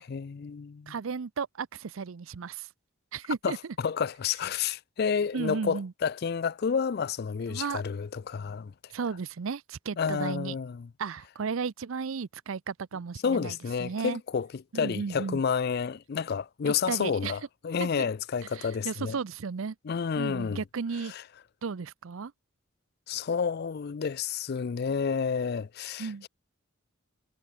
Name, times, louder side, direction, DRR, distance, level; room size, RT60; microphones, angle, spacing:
voice 1, 0.1-0.9 3.4-8.7 10.0-10.9 13.2-19.2 19.8-20.6 21.1-21.2 23.1-26.3, left 6 dB, 50° left, 0.4 m, -30 dB
voice 2, 0.9-2.7 3.1-3.6 5.3-5.9 7.5-7.8 8.9-10.6 11.0-14.2 14.7-15.4 16.7-17.3 17.8-18.1 18.5-19.7 20.2-21.1 21.6-22.3 26.0-26.3, right 5 dB, 75° right, 0.5 m, -34 dB
head